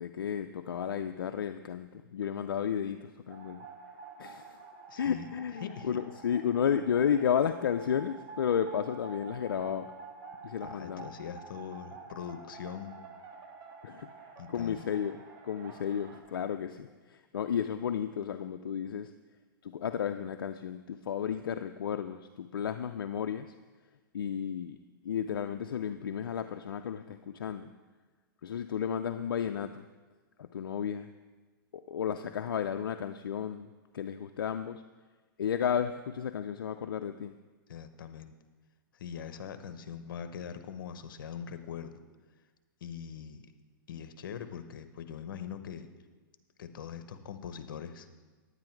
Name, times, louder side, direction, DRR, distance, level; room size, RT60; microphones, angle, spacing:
voice 1, 0.0-3.6 4.2-4.6 5.0-9.9 10.4-11.1 13.8-14.1 14.5-15.2 15.4-19.1 19.6-23.5 24.1-24.8 25.0-27.7 28.4-29.9 30.4-31.1 31.7-34.8 35.4-37.4, left 8 dB, 85° left, 8 dB, 0.5 m, -33 dB
sound 1, 3.3-16.2, right 4 dB, 40° right, 1.5 m, -49 dB
voice 2, 4.9-5.3 5.6-6.0 10.6-13.0 14.4-14.8 37.7-38.3 38.9-42.0 42.8-43.4 43.9-45.9 46.6-48.1, left 8 dB, 70° left, 10 dB, 1.0 m, -42 dB
9.7 x 9.6 x 4.6 m, 1.3 s
hypercardioid pair, 135°, 12 cm